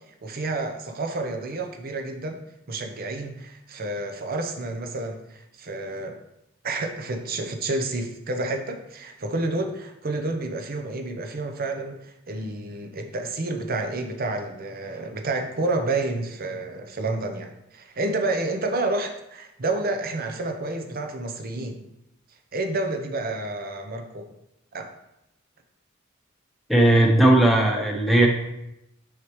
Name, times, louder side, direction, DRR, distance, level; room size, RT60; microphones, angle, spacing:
voice 1, 0.2-2.4 2.7-6.2 6.6-21.8 22.5-24.3 24.7-24.9, right 2 dB, 45° right, 6 dB, 0.8 m, -29 dB
voice 2, 26.7-28.3, right 1 dB, ahead, 0 dB, 1.0 m, -17 dB
6.6 x 6.5 x 3.1 m, 0.86 s
head